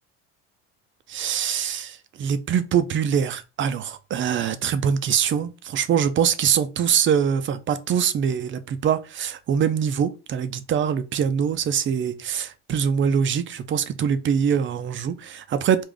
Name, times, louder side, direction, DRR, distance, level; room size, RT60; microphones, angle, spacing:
voice 1, 1.1-15.8, right 8 dB, 40° right, 0.5 m, -23 dB
3.4 x 2.5 x 3.7 m
supercardioid pair, 100°, 30 cm